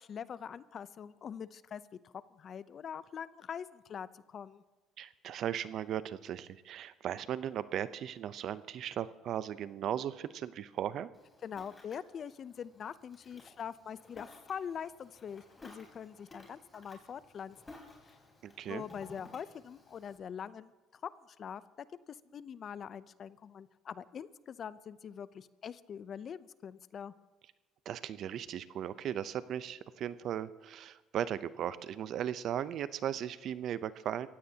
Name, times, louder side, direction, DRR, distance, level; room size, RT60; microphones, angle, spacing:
voice 1, 0.0-4.6 11.4-17.6 18.7-21.1 21.4-21.6 22.1-27.1, left 7 dB, 50° left, 16 dB, 0.6 m, -43 dB
voice 2, 5.0-11.1 18.4-18.8 27.9-34.3, right 10 dB, 60° right, 15 dB, 0.6 m, -37 dB
Ocean, 11.1-20.2, left 2 dB, 20° left, 4.5 m, -56 dB
24.0 x 16.0 x 2.9 m, 1.2 s
supercardioid pair, 85°, 0 cm